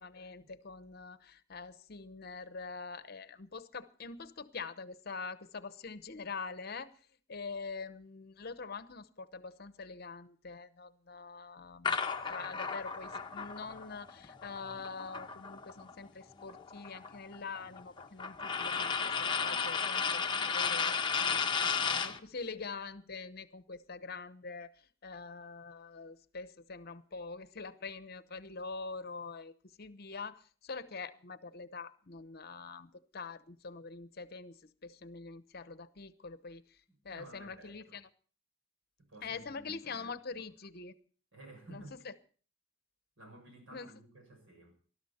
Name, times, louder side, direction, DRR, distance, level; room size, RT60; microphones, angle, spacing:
voice 1, 0.0-6.9 7.3-12.0 12.3-38.1 39.2-41.0 41.7-42.1 43.7-43.9, left 4 dB, 50° left, 0.9 m, -45 dB
sound 1, 11.8-15.9 16.2-22.2, left 5 dB, 25° left, 0.9 m, -34 dB
voice 2, 36.9-38.0 39.0-40.5 41.3-42.0 43.2-44.7, right 1 dB, 80° right, 6.7 m, -54 dB
19.5 x 12.5 x 4.3 m
head